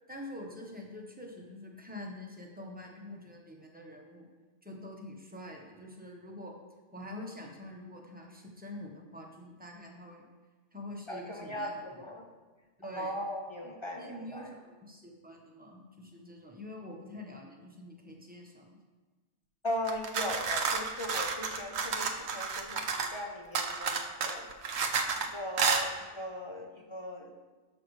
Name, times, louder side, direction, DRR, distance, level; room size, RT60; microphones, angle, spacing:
voice 1, 0.1-4.3 4.6-6.5 6.9-10.2 10.7-12.0 12.8-13.2 14.0-18.8, left 1 dB, 10° right, -1 dB, 1.0 m, -46 dB
voice 2, 11.1-12.2 13.0-14.5 19.6-24.8 25.2-27.3, left 1 dB, 35° left, 2 dB, 0.6 m, -39 dB
sound 1, 19.9-23.2 23.6-25.3 25.6-25.9, right 5 dB, 85° right, 1.0 m, -31 dB
13.0 x 5.2 x 3.2 m, 1.3 s
omnidirectional pair, 1.1 m